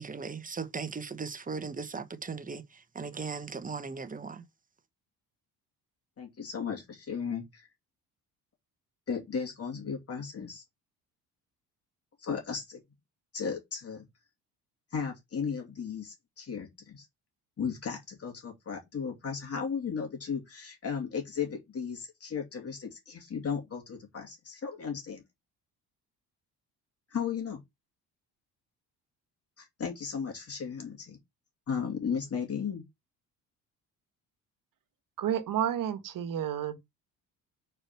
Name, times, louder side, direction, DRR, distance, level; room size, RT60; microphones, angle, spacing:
voice 1, 0.0-4.4, right 5 dB, 20° right, 1.1 m, -38 dB
voice 2, 6.2-7.6 9.1-10.6 12.2-12.8 13.3-14.1 14.9-17.1 17.6-25.2 27.1-27.6 29.6-31.2 31.7-32.8, left 6 dB, 40° left, 2.6 m, -35 dB
voice 3, 35.2-36.8, right 10 dB, 60° right, 1.5 m, -30 dB
4.9 x 4.4 x 5.8 m
supercardioid pair, 85°, 37 cm